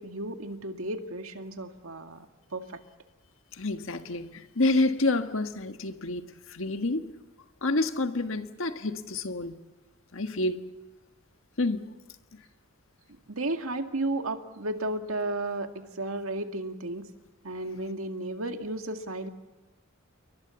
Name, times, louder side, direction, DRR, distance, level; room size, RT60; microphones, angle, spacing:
voice 1, 0.0-2.3 2.5-2.8 13.3-17.1 17.4-19.3, right 2 dB, 85° right, 2.0 m, -33 dB
voice 2, 3.6-7.1 7.6-9.5 10.1-10.6 11.6-11.8, left 2 dB, 70° left, 1.6 m, -28 dB
28.5 x 23.5 x 7.1 m
head